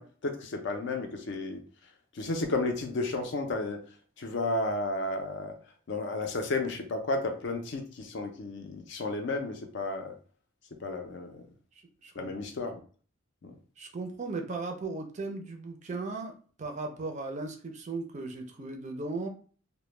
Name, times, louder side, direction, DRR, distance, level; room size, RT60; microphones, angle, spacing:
voice 1, 0.0-1.6 2.1-3.8 4.2-5.6 5.9-10.1 10.8-11.4 12.2-12.8 13.4-13.5, left 2 dB, 60° left, 4 dB, 0.4 m, -32 dB
voice 2, 11.8-12.3 13.8-16.3 16.6-19.3, right 3 dB, 35° right, 4 dB, 0.4 m, -37 dB
2.1 x 2.1 x 3.0 m, 0.41 s
head